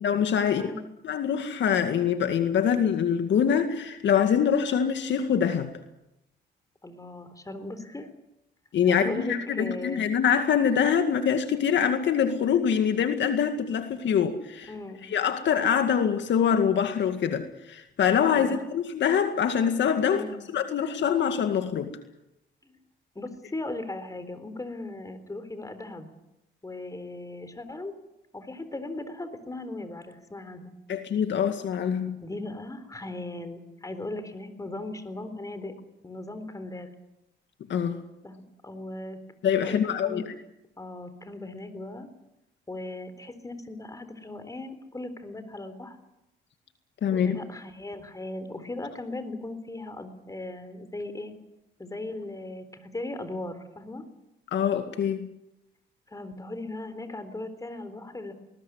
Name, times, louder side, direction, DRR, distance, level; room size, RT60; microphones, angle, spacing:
voice 1, 0.0-0.6 1.0-5.7 8.7-14.7 15.0-20.2 20.5-21.9 30.9-32.2 37.7-38.0 39.4-40.2 47.0-47.4 54.5-55.3, left 8 dB, 65° left, 7 dB, 2.0 m, -24 dB
voice 2, 0.5-0.9 6.8-8.1 8.9-10.0 14.7-15.0 18.3-18.7 20.1-20.4 22.6-22.8 23.2-26.1 26.6-27.9 28.3-30.7 32.2-35.7 36.0-36.9 38.2-39.2 39.5-40.3 40.8-42.1 42.7-46.0 47.1-51.3 51.8-54.0 56.1-58.3, left 2 dB, 15° left, 10 dB, 4.0 m, -38 dB
20.5 x 19.5 x 9.5 m, 0.89 s
cardioid pair, 90°, 20 cm